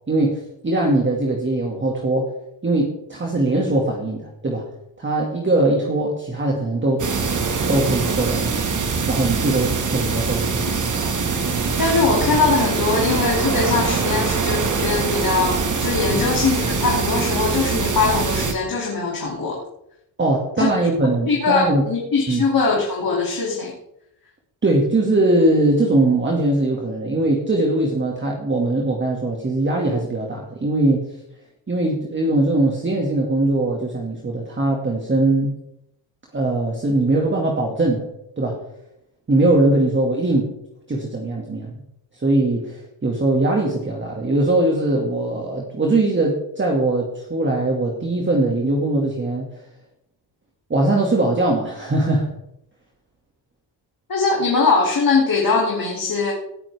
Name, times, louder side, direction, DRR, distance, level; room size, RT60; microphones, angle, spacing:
voice 1, 0.1-2.4 2.6-4.7 5.0-7.1 7.7-8.7 9.1-10.9 16.1-16.2 20.2-21.8 22.3-22.5 24.6-31.1 31.7-35.5 36.3-38.1 38.4-38.6 39.3-40.5 40.9-41.8 42.1-49.5 50.7-52.3, right 2 dB, 25° right, -1 dB, 2.2 m, -21 dB
sound 1, 7.0-18.5, right 5 dB, 40° right, 2.0 m, -23 dB
voice 2, 11.8-19.6 20.6-20.7 21.3-23.7 54.1-56.3, left 4 dB, 45° left, -2 dB, 2.9 m, -21 dB
18.5 x 8.8 x 3.6 m, 0.81 s
cardioid pair, 95°, 46 cm